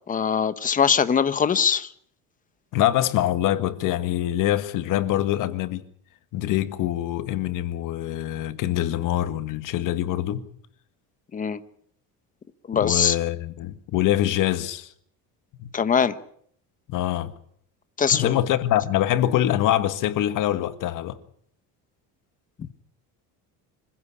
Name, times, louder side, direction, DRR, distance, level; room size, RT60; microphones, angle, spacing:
voice 1, 0.1-1.9 11.3-11.6 12.7-13.2 15.7-16.1 18.0-18.4, left 7 dB, 20° left, 1.1 m, -22 dB
voice 2, 2.7-5.9 6.3-10.4 12.7-14.9 15.6-15.7 16.9-17.3 18.1-21.2, left 13 dB, 55° left, 1.7 m, -24 dB
26.0 x 15.5 x 8.5 m
cardioid pair, 155°, 37 cm